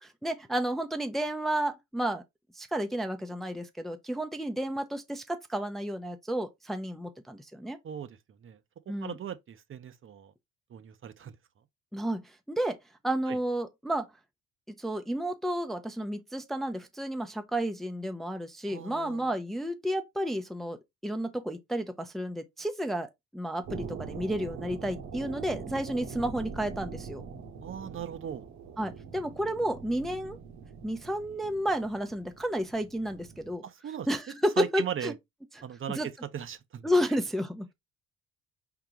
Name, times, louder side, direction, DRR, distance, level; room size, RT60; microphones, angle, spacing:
voice 1, 0.0-2.2 2.6-7.8 8.9-9.2 11.9-12.8 13.0-14.1 14.8-20.8 21.0-27.2 28.8-30.4 30.8-33.6 34.1-35.1 36.0-36.1 36.8-37.7, equal, ahead, 0.6 m, -31 dB
voice 2, 7.8-8.6 9.0-10.3 10.7-11.3 13.3-13.4 18.7-19.3 27.6-28.4 33.6-34.1 34.6-35.1 35.6-36.9, right 9 dB, 40° right, 0.7 m, -38 dB
sound 1, 23.6-33.5, right 6 dB, 65° right, 1.3 m, -43 dB
4.5 x 3.8 x 2.9 m
cardioid pair, 95°, 31 cm